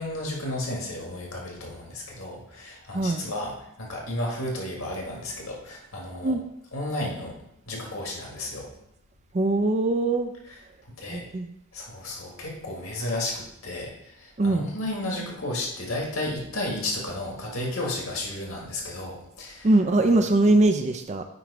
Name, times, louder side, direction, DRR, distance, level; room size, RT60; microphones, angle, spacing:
voice 1, 0.0-6.3 6.7-7.4 7.7-8.7 11.0-11.3 11.7-19.7, left 1 dB, 75° left, -1 dB, 2.0 m, -33 dB
voice 2, 2.9-3.2 6.2-6.4 9.3-10.3 11.1-11.5 14.4-14.7 19.6-21.2, right 2 dB, 30° right, 7 dB, 0.4 m, -22 dB
9.1 x 3.2 x 5.0 m, 0.78 s
head